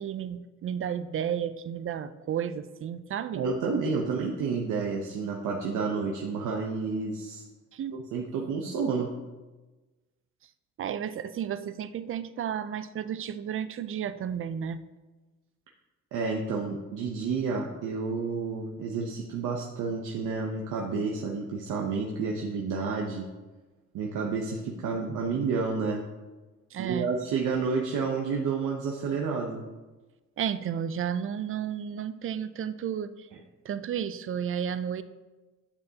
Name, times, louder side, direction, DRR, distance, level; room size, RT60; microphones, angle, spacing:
voice 1, 0.0-3.4 7.7-8.1 10.8-14.8 26.7-27.1 30.4-33.3 33.6-35.0, right 8 dB, 45° right, 13 dB, 0.5 m, -32 dB
voice 2, 3.3-7.4 8.1-9.1 16.1-23.3 23.9-26.0 26.8-29.6, right 4 dB, 85° right, 0 dB, 0.9 m, -30 dB
9.7 x 6.7 x 2.8 m, 1.2 s
cardioid pair, 90°, 30 cm